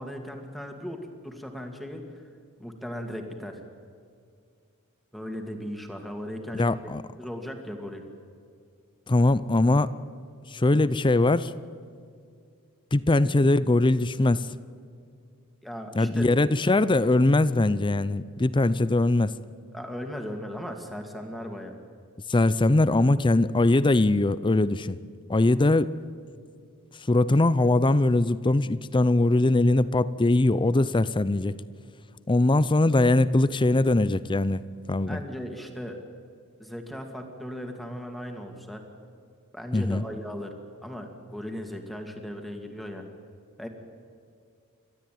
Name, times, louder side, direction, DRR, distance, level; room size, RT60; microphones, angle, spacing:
voice 1, 0.0-2.1 2.6-3.6 5.1-6.8 7.2-8.0 15.6-16.3 19.7-21.7 35.1-36.0 36.6-38.8 39.5-40.5 40.8-43.0 43.6-43.7, equal, ahead, 3 dB, 2.3 m, -37 dB
voice 2, 6.5-7.0 9.1-9.9 10.5-11.5 12.9-14.5 16.0-19.3 22.3-25.0 25.3-25.9 27.1-31.5 32.3-34.6 34.9-35.2 39.7-40.0, left 2 dB, 20° left, 16 dB, 0.6 m, -21 dB
29.5 x 13.0 x 9.3 m, 2.3 s
head